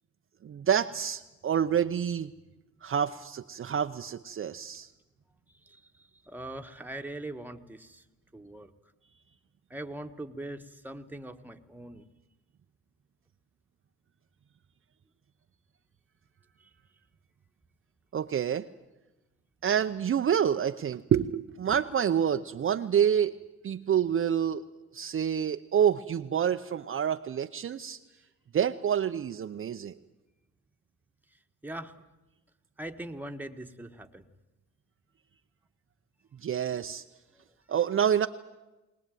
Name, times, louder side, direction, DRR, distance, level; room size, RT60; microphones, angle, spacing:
voice 1, 0.4-2.3 2.8-4.9 18.1-18.7 19.6-23.3 23.6-24.6 24.9-28.0 28.5-29.9 36.4-37.0 37.7-38.3, right 8 dB, 45° right, 7 dB, 0.7 m, -27 dB
voice 2, 6.2-8.0 8.3-8.7 9.7-12.0 31.6-31.9 32.8-34.2 37.3-37.4, right 1 dB, 5° right, 6 dB, 1.4 m, -41 dB
22.0 x 19.5 x 9.2 m, 1.1 s
cardioid pair, 90°, 30 cm